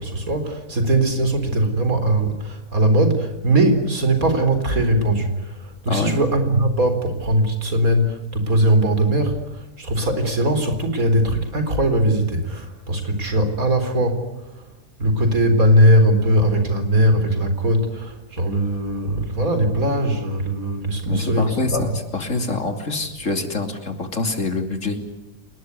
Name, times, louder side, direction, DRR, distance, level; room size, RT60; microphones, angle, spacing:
voice 1, 0.0-14.2 14.5-14.6 15.0-22.0, right 1 dB, 80° right, 7 dB, 4.4 m, -20 dB
voice 2, 21.1-25.0, left 3 dB, 60° left, 5 dB, 3.4 m, -25 dB
28.5 x 20.0 x 9.6 m, 1.0 s
omnidirectional pair, 1.5 m